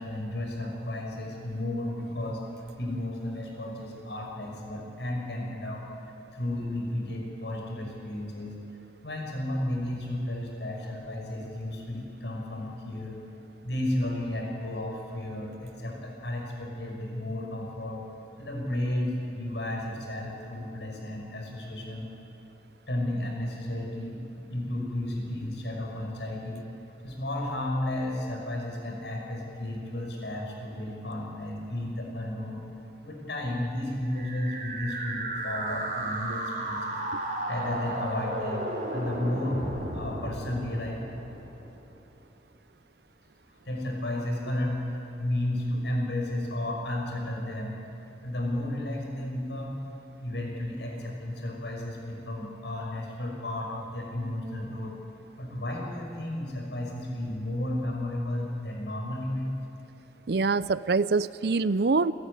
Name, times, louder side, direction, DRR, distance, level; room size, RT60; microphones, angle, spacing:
voice 1, 0.0-2.4 2.8-5.8 6.3-8.6 9.0-13.2 13.6-18.0 18.4-22.1 22.9-26.7 27.0-32.6 33.0-37.0 37.5-39.6 39.9-41.0 43.7-47.8 48.2-49.8 50.2-55.0 55.4-59.5, left 1 dB, 80° left, 0 dB, 5.8 m, -33 dB
sound 1, 34.0-41.9, right 1 dB, 50° right, 4.2 m, -34 dB
voice 2, 60.3-62.1, right 4 dB, 65° right, 16 dB, 0.6 m, -24 dB
28.5 x 14.5 x 9.9 m, 2.9 s
head